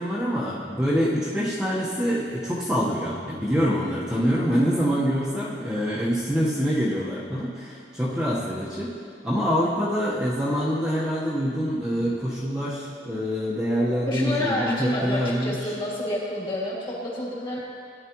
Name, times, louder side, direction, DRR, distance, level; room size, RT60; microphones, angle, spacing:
voice 1, 0.0-8.9 9.2-15.7, equal, 5° right, -9 dB, 1.2 m, -25 dB
voice 2, 14.1-17.6, left 1 dB, 30° left, -6 dB, 2.8 m, -28 dB
16.5 x 10.0 x 3.1 m, 2.3 s
head